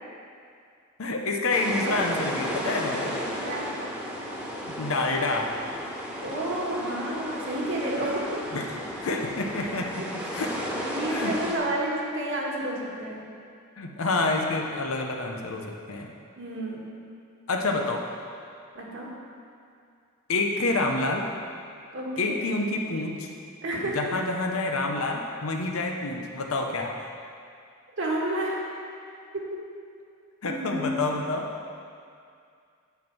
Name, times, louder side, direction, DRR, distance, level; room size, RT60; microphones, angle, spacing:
voice 1, 1.0-3.1 4.6-5.5 8.5-10.5 11.1-11.3 13.8-16.1 17.5-18.0 20.3-21.3 22.2-23.3 23.9-26.9 30.4-31.5, left 2 dB, 85° left, 2 dB, 0.9 m, -28 dB
sound 1, 1.5-11.6, equal, 5° right, 1.4 m, -34 dB
voice 2, 6.2-8.5 9.1-9.2 9.6-9.7 10.9-13.2 16.4-16.9 18.7-19.1 21.9-22.3 23.6-24.3 28.0-28.6 29.3-29.4 30.5-31.1, right 1 dB, 60° right, -3 dB, 1.6 m, -30 dB
9.3 x 4.5 x 7.1 m, 2.3 s
head